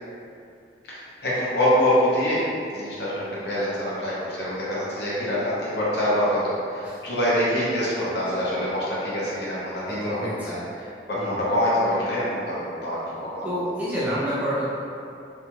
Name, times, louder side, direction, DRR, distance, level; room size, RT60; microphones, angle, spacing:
voice 1, 0.9-2.4 2.7-13.0 13.3-13.4, equal, 70° left, -8 dB, 0.8 m, -25 dB
voice 2, 8.0-8.5 9.9-10.7 11.1-11.5 13.4-14.7, equal, 10° right, -10 dB, 0.4 m, -29 dB
2.7 x 2.3 x 2.8 m, 2.6 s
head